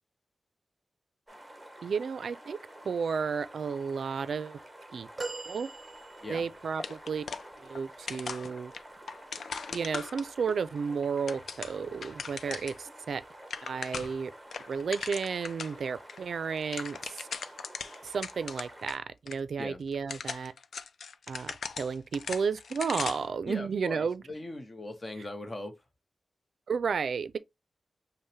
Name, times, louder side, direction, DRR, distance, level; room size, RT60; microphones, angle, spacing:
sound 1, 1.3-18.9, right 1 dB, 10° right, 1.1 m, -50 dB
voice 1, 1.8-2.6 2.8-4.6 4.9-5.1 5.5-5.7 6.3-7.2 7.6-8.7 9.7-13.2 13.6-14.3 14.7-17.3 18.0-20.5 21.3-24.2 26.7-27.4, right 5 dB, 75° right, 0.4 m, -32 dB
sound 2, 5.2-6.6 7.3-7.4, right 3 dB, 30° right, 0.8 m, -40 dB
sound 3, 6.8-10.5 11.0-12.8 13.1-13.2 13.4-14.2 14.5-15.8 16.1-16.2 16.5-19.0 19.3-19.4 19.9-23.3, left 5 dB, 80° left, 0.4 m, -39 dB
voice 2, 23.5-25.7, left 1 dB, 30° left, 0.8 m, -39 dB
5.4 x 2.1 x 3.2 m
wide cardioid pair, 125°, 0 cm